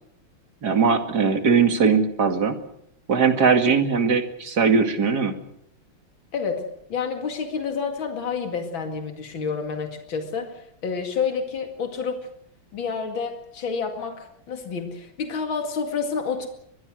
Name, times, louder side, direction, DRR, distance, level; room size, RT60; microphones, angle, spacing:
voice 1, 0.6-2.6 3.1-5.4, right 5 dB, 50° right, 7 dB, 2.7 m, -20 dB
voice 2, 6.3-6.6 6.9-12.3 12.7-16.5, left 5 dB, 75° left, 5 dB, 3.0 m, -29 dB
24.0 x 21.5 x 6.4 m, 0.72 s
omnidirectional pair, 2.2 m